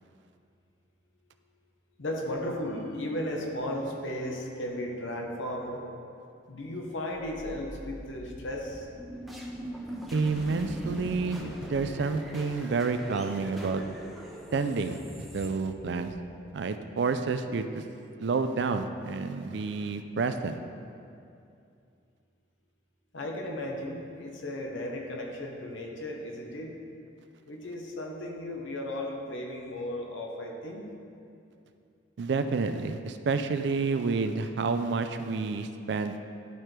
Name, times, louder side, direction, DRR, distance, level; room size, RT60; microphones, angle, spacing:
voice 1, 2.0-5.9 6.5-8.9 23.1-26.7 27.5-30.9, left 1 dB, 90° left, 1 dB, 0.9 m, -35 dB
sound 1, 7.1-16.3, equal, ahead, 0.6 m, -41 dB
voice 2, 10.1-13.8 14.5-15.0 15.3-16.1 16.5-17.8 18.2-20.6 32.2-36.2, right 4 dB, 65° right, 8 dB, 0.4 m, -29 dB
10.5 x 4.4 x 3.3 m, 2.5 s
head